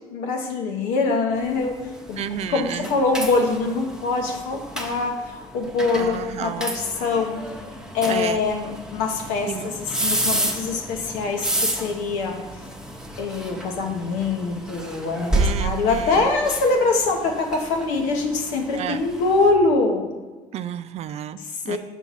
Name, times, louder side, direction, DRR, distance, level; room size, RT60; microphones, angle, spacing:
voice 1, 0.1-1.8 2.1-2.2 2.5-7.4 7.9-12.4 13.2-20.0 21.4-21.8, left 3 dB, 80° left, 3 dB, 0.9 m, -24 dB
sound 1, 1.4-19.5, right 1 dB, 5° right, 0.9 m, -31 dB
voice 2, 2.2-2.9 5.9-6.7 8.1-8.4 9.5-9.7 15.3-16.3 18.7-19.0 20.5-21.4 21.7-21.8, right 10 dB, 55° right, 12 dB, 0.4 m, -31 dB
5.8 x 4.5 x 4.1 m, 1.3 s
supercardioid pair, 70°, 13 cm